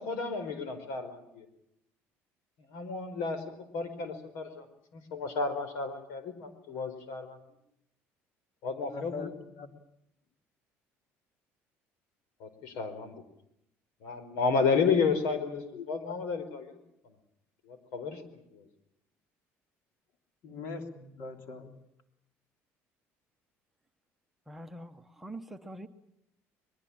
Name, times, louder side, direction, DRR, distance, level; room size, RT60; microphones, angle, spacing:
voice 1, 0.0-1.5 2.7-4.7 4.9-7.4 8.6-9.3 12.4-13.2 14.0-16.8 17.6-18.6, left 5 dB, 90° left, 11 dB, 4.7 m, -32 dB
voice 2, 8.9-9.7 15.7-15.8 20.4-21.7, left 4 dB, 55° left, 5 dB, 3.3 m, -42 dB
voice 3, 24.5-25.9, right 1 dB, 5° right, 5 dB, 0.9 m, -44 dB
22.5 x 22.5 x 8.8 m, 0.78 s
cardioid pair, 175°, 5 cm